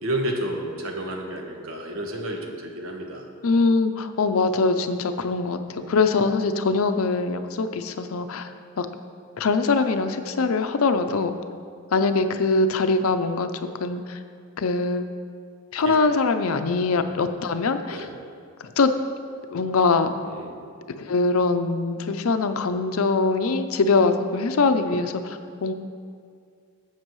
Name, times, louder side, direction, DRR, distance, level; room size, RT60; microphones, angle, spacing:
voice 1, 0.0-3.2 5.8-6.0 15.8-16.0 16.6-17.1 17.9-18.1 20.2-20.6, right 1 dB, 70° right, 2 dB, 1.2 m, -31 dB
voice 2, 3.4-8.9 9.4-11.3 11.9-14.2 14.6-15.1 15.7-18.1 18.6-18.9 19.5-20.1 21.0-25.7, left 3 dB, 75° left, 9 dB, 0.5 m, -23 dB
13.0 x 7.4 x 3.1 m, 2.2 s
head